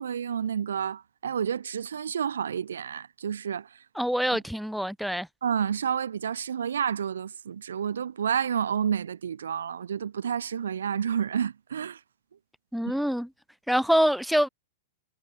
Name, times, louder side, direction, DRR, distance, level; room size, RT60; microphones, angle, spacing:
voice 1, 0.0-3.8 5.4-12.0, right 8 dB, 70° right, 0.4 m, -30 dB
voice 2, 4.0-5.3 12.7-13.3 13.7-14.5, equal, ahead, 0.6 m, -25 dB
figure-of-eight pair, 100°, 0 cm